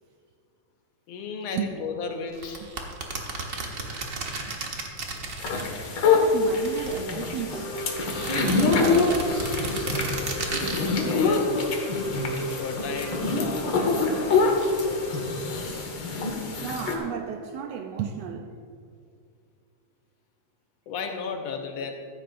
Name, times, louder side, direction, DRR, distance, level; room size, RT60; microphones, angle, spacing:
voice 1, 1.1-2.6 11.0-11.8 12.6-14.7 20.9-22.1, left 5 dB, 70° left, 1.9 m, -34 dB
sound 1, 2.3-6.1 6.4-7.5 8.1-10.8, right 3 dB, 55° right, 0.8 m, -33 dB
voice 2, 4.1-4.6 5.5-5.8 6.1-7.7 9.0-9.1 16.6-18.6, right 8 dB, 75° right, 1.6 m, -34 dB
sound 2, 5.4-17.0, left 4 dB, 50° left, 1.5 m, -25 dB
sound 3, 7.5-15.6, right 1 dB, 30° left, 3.9 m, -35 dB
15.0 x 13.0 x 2.6 m
omnidirectional pair, 3.3 m